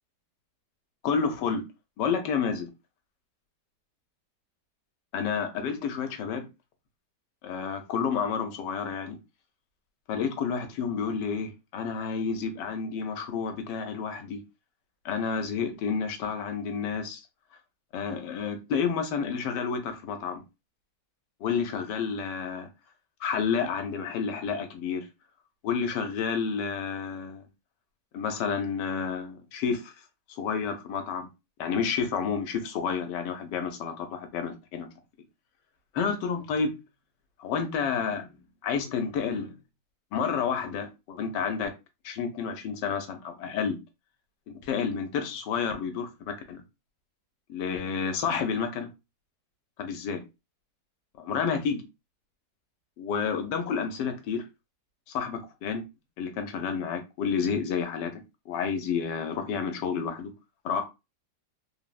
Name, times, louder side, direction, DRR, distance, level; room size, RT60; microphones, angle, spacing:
voice 1, 1.0-1.6 2.0-2.7 5.1-6.5 7.4-9.2 10.1-14.4 15.0-17.2 17.9-20.4 21.4-22.7 23.2-25.1 25.6-27.4 28.1-29.9 30.3-31.3 31.6-34.9 35.9-36.7 37.4-38.4 38.6-39.5 40.1-41.7 42.0-43.8 44.6-46.6 47.5-48.9 49.8-50.2 51.2-51.8 53.0-54.4 55.1-55.8 56.2-58.2 58.5-60.3 60.6-60.8, left 6 dB, 85° left, 1.3 m, -30 dB
3.5 x 2.0 x 2.3 m
omnidirectional pair, 1.9 m